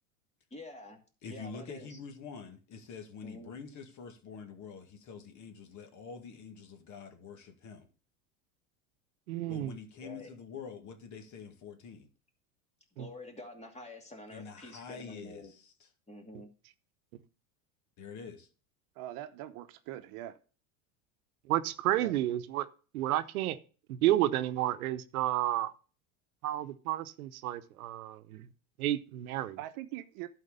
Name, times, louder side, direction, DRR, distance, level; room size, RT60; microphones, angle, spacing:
voice 1, 0.5-1.0 1.3-2.0 3.2-3.5 10.0-10.3 13.0-15.5 16.1-16.5, left 1 dB, 15° left, 2.6 m, -48 dB
voice 2, 1.2-7.9 9.5-12.1 14.3-15.9 18.0-18.5, left 5 dB, 45° left, 2.0 m, -46 dB
voice 3, 9.3-9.7 13.0-13.1 21.5-22.7 22.9-23.6 23.9-25.7 26.4-28.5 28.8-29.6, right 14 dB, 85° right, 0.9 m, -31 dB
voice 4, 19.0-20.4 22.0-22.1 29.6-30.3, right 14 dB, 55° right, 1.0 m, -42 dB
11.5 x 4.7 x 6.7 m
supercardioid pair, 110°, 42 cm